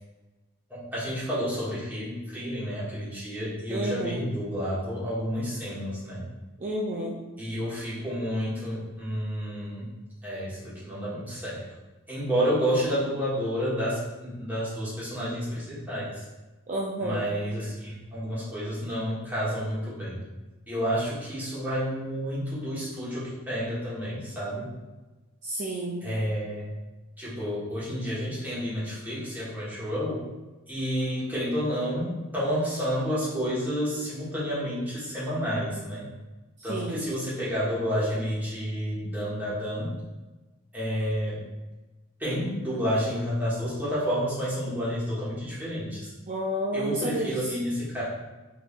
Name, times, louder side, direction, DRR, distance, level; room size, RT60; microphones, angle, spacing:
voice 1, 0.7-6.3 7.4-9.9 10.2-11.6 12.1-16.2 17.0-20.2 20.7-24.7 26.0-26.7 27.2-30.2 30.7-36.1 36.6-39.9 40.7-41.4 42.2-46.1 46.7-48.0, equal, 10° right, -10 dB, 1.3 m, -30 dB
voice 2, 3.7-4.3 6.6-7.2 16.7-17.2 25.4-26.1 36.6-37.0 46.3-47.6, right 1 dB, 35° right, -4 dB, 0.4 m, -30 dB
3.5 x 3.5 x 2.4 m, 1.1 s
head